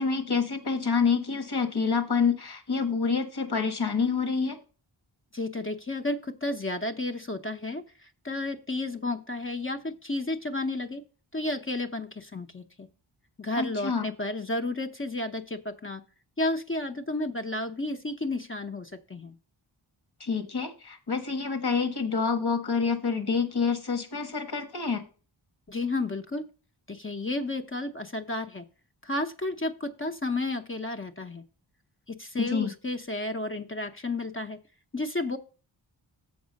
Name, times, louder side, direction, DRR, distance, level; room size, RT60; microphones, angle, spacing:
voice 1, 0.0-4.6 13.6-14.1 20.2-25.0 32.4-32.7, left 5 dB, 55° left, 8 dB, 1.4 m, -27 dB
voice 2, 5.3-7.8 8.2-11.0 11.3-12.9 13.4-16.0 16.4-19.3 25.7-26.4 26.9-28.6 29.0-31.4 32.1-34.6 34.9-35.4, left 2 dB, 25° left, 6 dB, 0.6 m, -32 dB
7.2 x 4.8 x 6.3 m, 0.36 s
wide cardioid pair, 80°, 47 cm